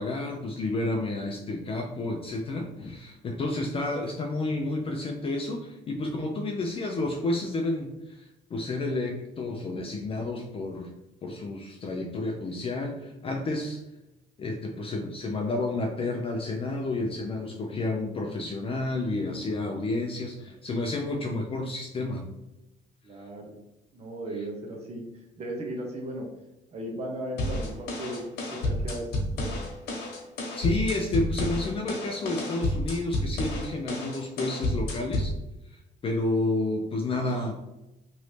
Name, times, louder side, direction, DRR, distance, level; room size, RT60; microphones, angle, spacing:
voice 1, 0.0-10.9 11.2-13.8 14.4-22.3 30.6-35.3 35.7-37.5, left 2 dB, 35° left, 2 dB, 0.4 m, -30 dB
voice 2, 23.0-23.6 23.9-26.3 26.7-28.2 28.6-29.1 29.4-29.6, right 1 dB, 40° right, 0 dB, 0.8 m, -36 dB
sound 1, 27.4-35.4, left 1 dB, 70° left, 1.1 m, -30 dB
3.0 x 2.6 x 3.2 m, 0.95 s
cardioid pair, 110°, 17 cm